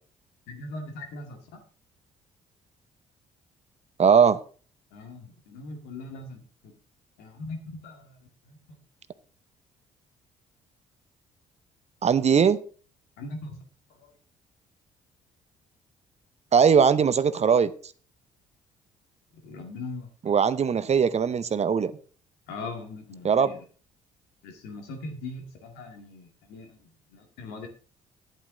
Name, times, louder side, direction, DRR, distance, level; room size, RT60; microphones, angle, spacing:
voice 1, 0.5-1.4 4.9-6.4 7.2-7.6 7.8-8.0 13.2-13.5 19.4-20.1 22.5-23.5 24.4-26.7 27.1-27.7, left 2 dB, 70° left, 4 dB, 2.1 m, -39 dB
voice 2, 4.0-4.4 12.0-12.6 16.5-17.7 20.2-21.9 23.2-23.5, right 6 dB, 40° right, 14 dB, 0.7 m, -20 dB
10.5 x 8.7 x 3.9 m, 0.40 s
hypercardioid pair, 50°, 17 cm